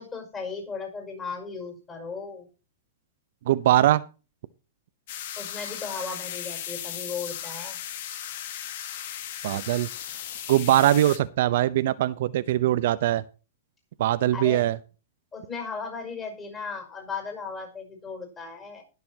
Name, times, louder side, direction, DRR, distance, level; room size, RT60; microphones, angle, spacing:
voice 1, 0.0-2.5 5.4-7.8 14.3-14.7 15.3-18.8, left 5 dB, 20° left, 3 dB, 5.7 m, -36 dB
voice 2, 3.5-4.0 9.4-9.9 10.5-13.2 14.0-14.8, right 13 dB, 60° right, 14 dB, 0.7 m, -21 dB
sound 1, 5.1-11.2, left 10 dB, 55° left, 1.7 m, -36 dB
20.5 x 6.8 x 2.9 m, 0.33 s
hypercardioid pair, 150°, 0 cm